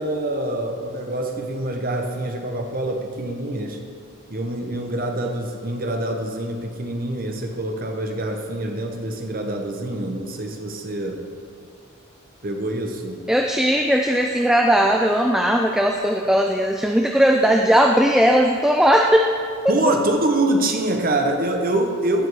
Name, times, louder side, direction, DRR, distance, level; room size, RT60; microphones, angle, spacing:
voice 1, 0.0-3.8 4.3-11.3 12.4-13.3 19.7-22.3, right 1 dB, 40° right, 4 dB, 0.9 m, -25 dB
voice 2, 13.3-19.3 19.9-20.0, equal, ahead, 2 dB, 0.3 m, -18 dB
15.5 x 5.2 x 4.8 m, 2.2 s
head